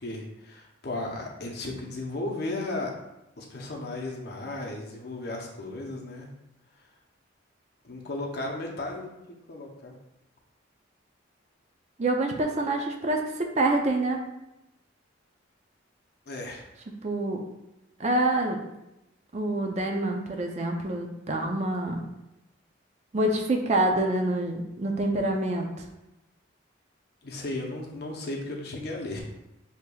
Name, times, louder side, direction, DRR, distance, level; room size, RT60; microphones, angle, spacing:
voice 1, 0.0-2.9 3.4-6.3 7.8-9.9 16.3-16.6 27.2-29.2, left 2 dB, 55° left, 0 dB, 0.7 m, -35 dB
voice 2, 12.0-14.2 17.0-17.4 18.0-18.6 19.3-22.0 23.1-25.7, right 2 dB, 35° right, 3 dB, 0.4 m, -26 dB
6.6 x 2.8 x 2.3 m, 0.92 s
head